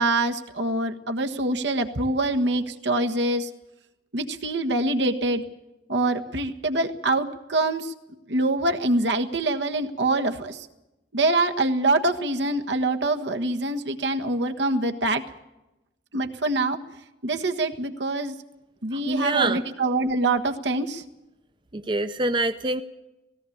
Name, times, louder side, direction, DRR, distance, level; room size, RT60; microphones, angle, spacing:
voice 1, 0.0-3.5 4.1-5.4 5.9-7.9 8.3-10.7 11.1-15.2 16.1-16.8 17.2-18.3 18.8-21.0, right 2 dB, 80° right, 5 dB, 1.5 m, -25 dB
voice 2, 18.9-19.6 21.7-22.8, right 2 dB, 25° right, 9 dB, 0.6 m, -25 dB
18.0 x 17.5 x 8.7 m, 0.95 s
head